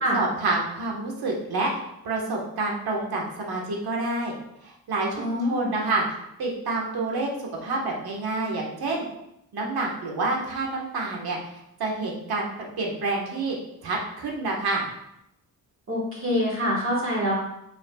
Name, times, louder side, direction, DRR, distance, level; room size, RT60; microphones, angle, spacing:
voice 1, 0.1-1.7 2.0-4.4 4.6-6.0 6.4-9.0 9.5-11.5 11.8-13.6 13.8-14.9, right 3 dB, 80° right, -1 dB, 1.6 m, -28 dB
voice 2, 5.2-5.7 15.9-17.3, equal, 35° right, -5 dB, 1.8 m, -25 dB
8.3 x 5.5 x 2.4 m, 0.81 s
wide cardioid pair, 175°, 37 cm